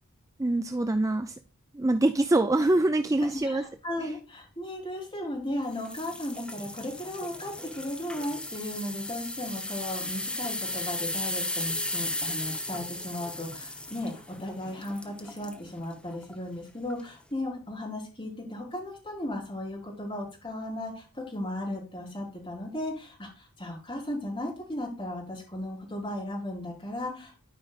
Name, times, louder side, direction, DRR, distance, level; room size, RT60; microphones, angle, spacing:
voice 1, 0.4-1.4 1.7-3.6 4.0-4.1, right 2 dB, 15° right, 8 dB, 0.4 m, -24 dB
voice 2, 3.3-27.4, left 1 dB, 25° left, -3 dB, 3.8 m, -36 dB
sound 1, 5.7-15.6 16.1-16.3 16.9-17.0, left 1 dB, 5° left, 0.9 m, -36 dB
13.0 x 5.2 x 2.4 m, 0.34 s
head